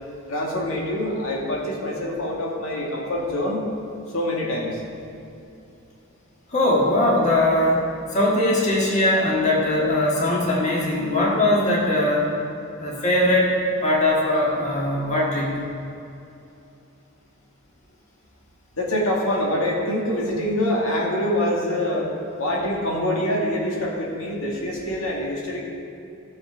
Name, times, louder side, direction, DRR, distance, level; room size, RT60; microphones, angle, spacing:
voice 1, 0.3-3.6 4.1-4.8 18.7-22.1 22.4-25.6, left 1 dB, 80° left, -2 dB, 2.1 m, -25 dB
voice 2, 6.5-7.8 8.1-12.3 12.8-13.5 13.8-15.6, left 1 dB, 35° left, -4 dB, 1.7 m, -20 dB
16.5 x 6.8 x 4.8 m, 2.6 s
head